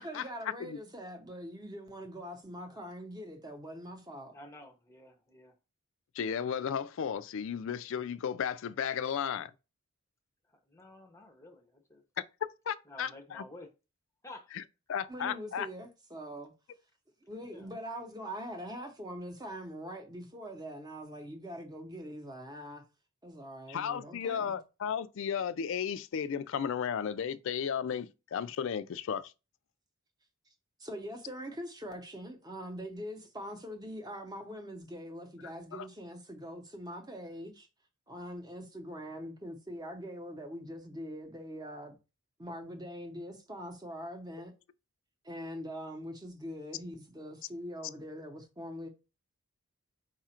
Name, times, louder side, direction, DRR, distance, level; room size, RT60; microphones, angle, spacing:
voice 1, 0.0-4.4 15.1-16.5 17.3-22.8 23.2-24.6 30.8-37.7 38.1-42.0 42.4-44.5 45.2-48.9, equal, 15° right, 0.8 m, -43 dB
voice 2, 4.3-5.6 10.5-12.0 12.9-13.7 14.2-14.5 17.4-17.7, left 1 dB, 15° left, 0.6 m, -52 dB
voice 3, 6.1-9.5 12.7-13.4 14.9-15.7 23.7-29.3 35.7-35.9, left 7 dB, 60° left, 0.3 m, -34 dB
4.8 x 2.4 x 4.3 m
head